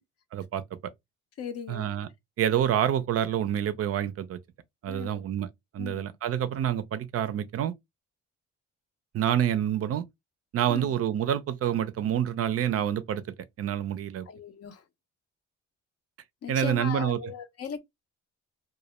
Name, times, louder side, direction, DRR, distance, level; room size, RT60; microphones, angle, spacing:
voice 1, 0.3-0.6 1.7-2.1 2.4-4.4 4.8-5.5 5.7-7.7 9.1-10.0 10.5-13.2 13.6-14.3 16.5-17.2, right 10 dB, 50° right, 0.4 m, -27 dB
voice 2, 1.4-1.9 4.9-5.2 5.8-6.1 10.7-10.9 14.3-14.8 16.4-17.8, left 7 dB, 55° left, 0.6 m, -38 dB
2.2 x 2.0 x 2.9 m
cardioid pair, 90°, 30 cm